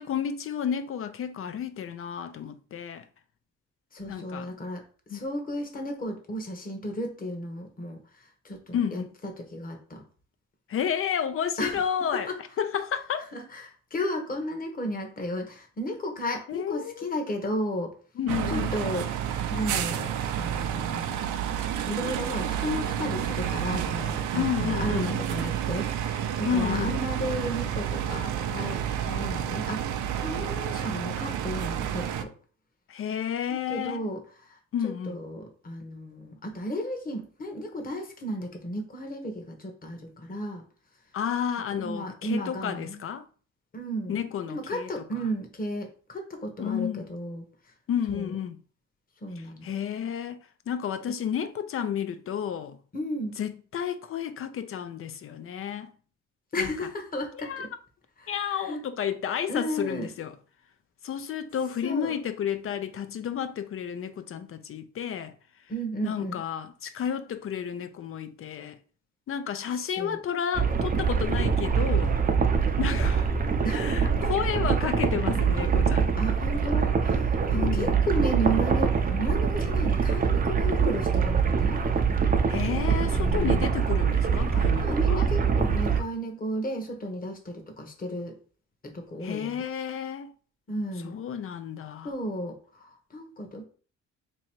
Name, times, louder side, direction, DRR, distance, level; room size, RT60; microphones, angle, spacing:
voice 1, 0.0-3.0 4.1-4.5 5.1-5.2 8.7-9.1 10.7-12.3 12.6-13.3 16.5-17.1 18.2-18.7 24.3-25.2 26.4-27.0 32.9-34.0 34.7-35.2 41.1-43.2 44.1-45.2 46.6-47.1 47.9-48.6 49.4-52.8 53.4-55.9 56.6-56.7 57.3-57.7 58.3-60.3 61.0-65.3 66.0-68.8 69.3-72.2 72.8-73.3 73.7-76.2 77.5-78.0 82.5-85.3 89.2-90.3 91.0-92.1, left 8 dB, 45° left, 0.4 m, -31 dB
voice 2, 3.9-4.8 5.1-8.0 8.4-9.0 9.4-10.0 11.6-11.8 13.3-17.9 18.5-19.1 19.5-21.2 21.8-29.8 30.2-32.3 33.7-34.2 34.5-34.6 34.8-40.6 41.7-43.0 43.7-44.2 44.5-47.4 48.1-48.3 49.2-49.6 52.9-53.4 56.5-57.7 58.2-58.8 59.5-60.1 61.8-62.2 65.7-66.4 69.8-70.2 73.6-73.9 76.2-81.8 83.0-83.7 84.8-88.3 88.8-89.6 90.7-91.2 92.0-93.7, equal, 30° left, 1.1 m, -34 dB
sound 1, 18.3-32.2, right 9 dB, 80° right, 0.5 m, -30 dB
sound 2, 70.5-86.0, right 6 dB, 30° right, 0.5 m, -24 dB
2.9 x 2.7 x 4.4 m
cardioid pair, 90°, 30 cm